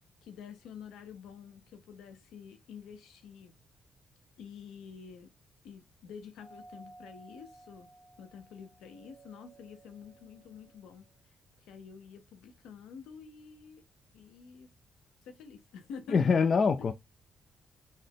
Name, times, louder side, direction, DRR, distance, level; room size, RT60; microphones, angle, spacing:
voice 1, 0.2-3.5 4.4-5.3 5.6-7.9 8.2-13.8 14.1-14.7 15.2-16.5, left 6 dB, 85° left, 0.6 m, -49 dB
Doorbell, 6.4-11.2, right 2 dB, 15° right, 1.3 m, -56 dB
voice 2, 16.1-16.9, left 5 dB, 55° left, 0.4 m, -24 dB
3.9 x 2.0 x 3.5 m
supercardioid pair, 65°, 0 cm